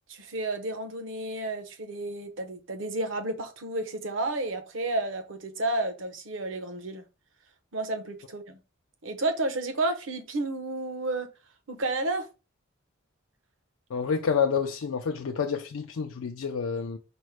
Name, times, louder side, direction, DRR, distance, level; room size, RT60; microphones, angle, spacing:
voice 1, 0.1-7.0 7.7-8.6 9.0-11.3 11.7-12.3, right 2 dB, 65° right, 0.9 m, -31 dB
voice 2, 13.9-17.0, left 6 dB, 80° left, 0.5 m, -28 dB
5.3 x 2.1 x 4.6 m
head